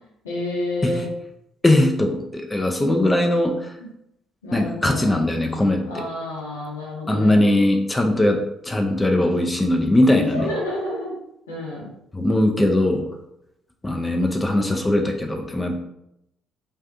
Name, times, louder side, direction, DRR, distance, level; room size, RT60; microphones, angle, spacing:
voice 1, 0.2-1.1 4.4-5.1 5.8-7.4 10.1-11.2 11.5-11.9, left 1 dB, 75° left, -4 dB, 0.7 m, -29 dB
voice 2, 1.6-3.7 4.5-6.0 7.1-10.5 12.1-13.1 13.8-15.8, left 1 dB, 15° left, 3 dB, 0.4 m, -20 dB
2.5 x 2.4 x 2.5 m, 0.82 s
figure-of-eight pair, 45°, 0 cm